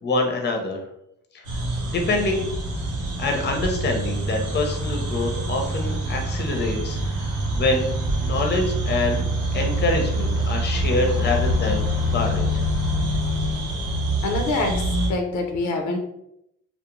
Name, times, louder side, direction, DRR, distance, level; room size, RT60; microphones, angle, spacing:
voice 1, 0.0-0.8 1.3-2.5 3.2-7.9 8.2-9.3 9.5-11.8 12.1-12.5, left 2 dB, 35° left, 2 dB, 0.6 m, -25 dB
sound 1, 1.4-15.1, equal, 85° right, 0.8 m, -25 dB
voice 2, 14.2-16.0, left 3 dB, 75° left, 3 dB, 0.5 m, -25 dB
2.4 x 2.1 x 2.9 m, 0.78 s
cardioid pair, 90°, 30 cm